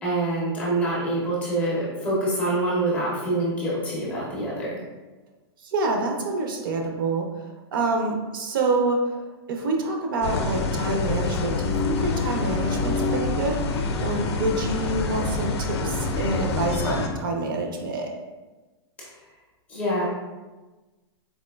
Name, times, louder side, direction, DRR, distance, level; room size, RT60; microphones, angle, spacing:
voice 1, 0.0-4.8 19.7-20.1, right 1 dB, 10° left, -6 dB, 0.4 m, -25 dB
voice 2, 5.6-7.4 7.7-9.1 9.5-18.1, right 2 dB, 55° right, 2 dB, 0.5 m, -27 dB
sound 1, 10.2-17.1, left 3 dB, 80° left, 0.4 m, -26 dB
4.1 x 2.5 x 2.2 m, 1.2 s
supercardioid pair, 175°, 14 cm